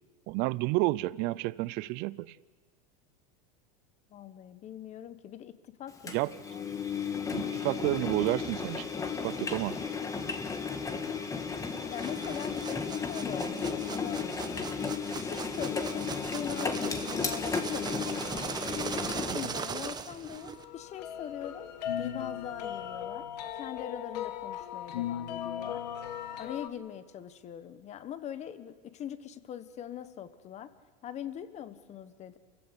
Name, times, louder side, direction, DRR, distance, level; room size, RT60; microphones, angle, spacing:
voice 1, 0.3-2.4 6.1-6.3 7.3-8.9 9.2-9.8 19.3-19.4, right 20 dB, 55° right, 0.6 m, -30 dB
voice 2, 4.1-6.6 11.9-14.7 15.1-16.0 16.3-18.6 19.2-21.7 22.0-25.8 26.4-30.7 31.0-32.4, left 10 dB, 35° left, 1.3 m, -42 dB
Engine, 6.1-19.5, left 5 dB, 15° left, 1.6 m, -34 dB
sound 1, 11.9-20.6, right 6 dB, 20° right, 1.2 m, -39 dB
sound 2, 20.5-26.7, left 10 dB, 85° left, 1.4 m, -37 dB
28.5 x 15.5 x 8.2 m
supercardioid pair, 130°, 21 cm